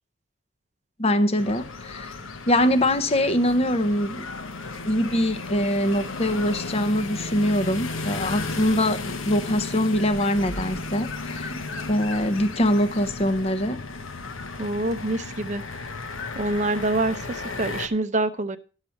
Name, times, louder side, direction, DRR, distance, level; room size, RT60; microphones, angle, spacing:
voice 1, 1.0-2.1 2.5-4.3 4.8-11.6 11.9-13.8, left 1 dB, 30° left, 0.8 m, -23 dB
sound 1, 1.4-17.9, left 3 dB, 65° left, 1.0 m, -34 dB
voice 2, 14.6-15.6 16.4-18.6, right 2 dB, 35° right, 0.6 m, -26 dB
11.5 x 6.5 x 5.7 m
head